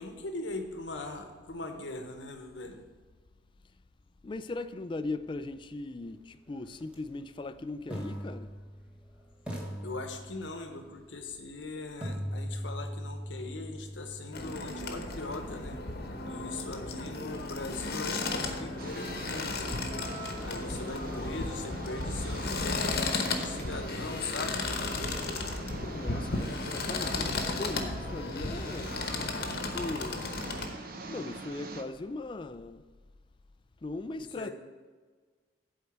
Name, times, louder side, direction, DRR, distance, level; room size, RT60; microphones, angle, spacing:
voice 1, 0.0-2.8 9.8-15.8 16.3-19.7 20.4-24.6 34.1-34.5, left 3 dB, 85° left, 1.0 m, -40 dB
voice 2, 4.2-8.5 25.9-29.0 29.4-30.3 31.1-32.8 33.8-34.5, left 2 dB, 25° left, 0.3 m, -39 dB
sound 1, 6.8-6.9 7.9-9.1 9.5-10.7 12.0-15.9, equal, 5° right, 1.2 m, -40 dB
sound 2, 14.3-30.7, left 3 dB, 55° left, 0.9 m, -34 dB
sound 3, 18.8-31.8, right 3 dB, 50° right, 0.7 m, -45 dB
7.8 x 4.5 x 7.1 m
head